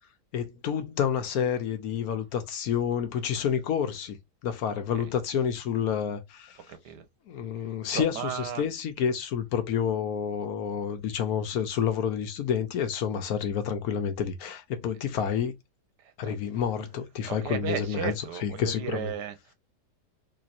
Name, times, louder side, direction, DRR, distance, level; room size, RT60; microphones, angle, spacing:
voice 1, 0.3-4.2 4.4-6.6 7.3-15.5 16.2-18.1 18.4-19.1, left 8 dB, 70° left, 1.1 m, -29 dB
voice 2, 6.7-7.0 7.8-8.7 16.0-16.4 17.2-19.5, right 9 dB, 90° right, 1.4 m, -35 dB
3.5 x 3.0 x 2.5 m
omnidirectional pair, 1.7 m